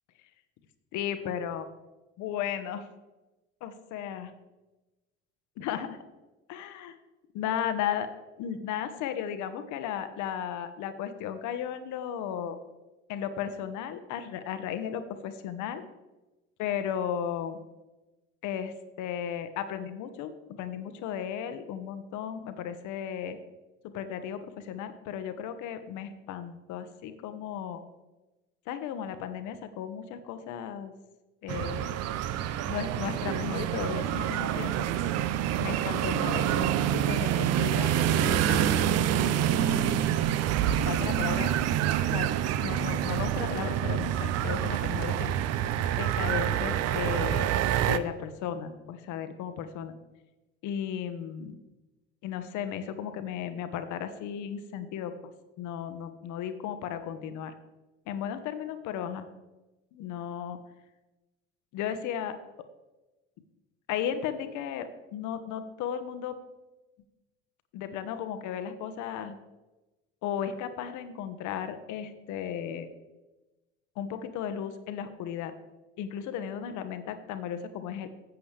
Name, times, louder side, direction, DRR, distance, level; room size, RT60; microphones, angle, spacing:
voice 1, 0.9-1.7 2.2-2.9 3.6-4.3 5.6-6.0 6.5-6.9 7.3-8.1 8.4-12.6 13.1-15.8 16.6-17.6 18.4-20.3 20.6-23.4 23.9-27.8 28.7-30.9 31.4-31.9 32.7-34.9 35.6-40.0 40.8-41.5 42.1-42.3 42.6-45.4 45.9-47.5 47.9-49.9 50.6-51.6 52.2-55.1 55.6-57.5 58.1-59.3 59.9-60.6 61.7-62.4 63.9-66.4 67.7-69.4 70.2-72.9 74.0-75.5 76.0-78.1, left 9 dB, 50° left, 10 dB, 1.1 m, -35 dB
sound 1, 31.5-48.0, right 11 dB, 45° right, 0.6 m, -27 dB
13.5 x 8.4 x 3.4 m, 1.1 s
figure-of-eight pair, 60°, 37 cm